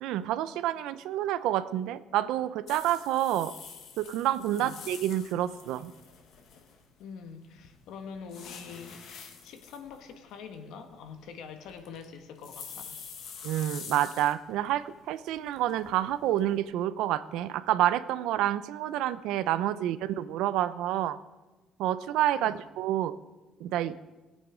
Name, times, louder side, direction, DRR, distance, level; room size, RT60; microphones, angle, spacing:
voice 1, 0.0-3.5 4.0-5.9 13.4-21.2 21.8-23.1 23.6-24.0, right 12 dB, 90° right, 14 dB, 0.6 m, -28 dB
sound 1, 2.7-7.0 7.6-14.7 15.1-16.6, left 6 dB, 55° left, 1.5 m, -47 dB
voice 2, 7.0-9.0 9.4-13.0 19.7-19.9 22.3-22.6, left 6 dB, 70° left, 6 dB, 1.5 m, -45 dB
20.0 x 8.6 x 5.1 m, 1.1 s
cardioid pair, 180°, 0 cm